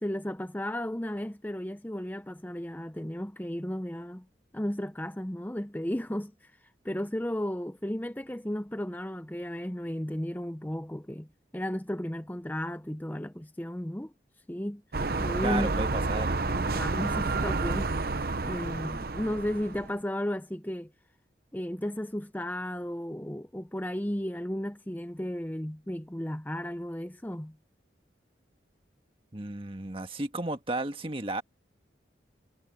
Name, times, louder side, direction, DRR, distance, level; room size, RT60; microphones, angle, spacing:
voice 1, 0.0-4.2 4.5-6.3 6.8-11.3 11.5-14.1 14.5-14.8 15.2-15.7 16.0-16.1 16.4-20.9 21.5-27.5, equal, 10° left, 0.7 m, -34 dB
sound 1, 14.9-19.9, right 3 dB, 55° right, 0.9 m, -30 dB
voice 2, 15.4-16.4 29.3-31.4, right 2 dB, 30° right, 1.6 m, -33 dB
head